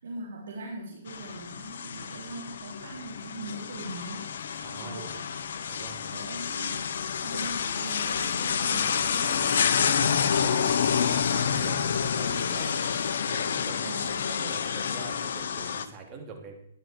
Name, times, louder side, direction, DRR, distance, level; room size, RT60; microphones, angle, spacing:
voice 1, 0.0-4.3 4.8-5.3 6.1-9.8 13.8-14.3, right 2 dB, 70° right, -3 dB, 3.5 m, -41 dB
sound 1, 1.1-15.9, left 7 dB, 65° left, 1.2 m, -28 dB
voice 2, 4.6-5.2 5.7-6.3 9.8-10.8 11.1-12.8 13.1-16.5, right 5 dB, 25° right, 2 dB, 2.9 m, -44 dB
14.5 x 10.5 x 4.6 m, 0.76 s
hypercardioid pair, 145°, 0 cm